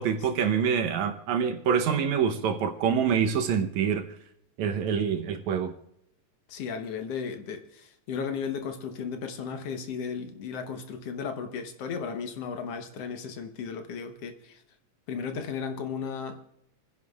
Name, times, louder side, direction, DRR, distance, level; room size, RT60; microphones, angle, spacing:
voice 1, 0.0-4.1 4.6-5.7, right 7 dB, 75° right, 2.2 m, -26 dB
voice 2, 6.5-14.6 15.1-16.4, left 6 dB, 60° left, 1.9 m, -35 dB
29.5 x 10.5 x 2.4 m
omnidirectional pair, 3.4 m